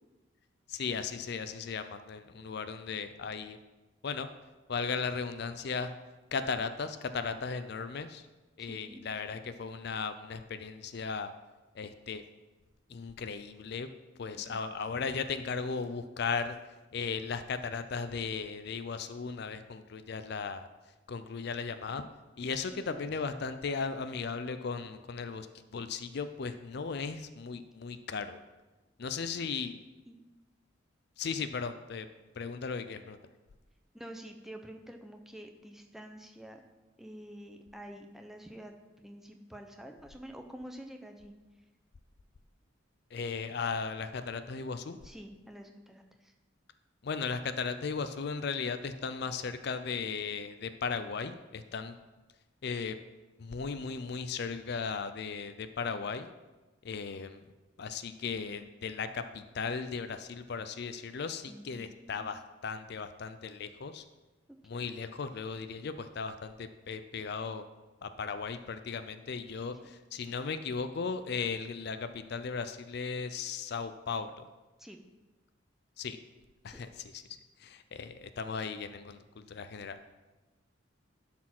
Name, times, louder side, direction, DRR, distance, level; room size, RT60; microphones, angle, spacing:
voice 1, 0.7-3.6 4.0-4.3 4.7-5.9 6.3-8.3 8.6-11.3 11.7-12.2 12.9-13.9 14.2-16.6 16.9-20.7 21.1-22.1 22.4-25.5 25.7-28.4 29.0-29.8 31.2-32.1 32.4-33.2 43.1-45.0 47.0-52.0 52.6-53.0 53.4-56.3 56.8-57.4 57.8-64.0 64.6-67.6 68.0-74.4 76.0-76.2 76.6-77.2 77.6-80.0, left 5 dB, 55° left, 10 dB, 0.4 m, -36 dB
voice 2, 8.6-9.0 14.3-14.6 22.5-22.8 30.1-30.2 33.9-36.6 37.0-41.3 45.0-46.3 61.5-62.3 64.7-65.1 69.8-70.0 74.8-75.0 76.7-76.8, equal, ahead, 4 dB, 0.6 m, -48 dB
11.0 x 4.4 x 6.0 m, 1.2 s
head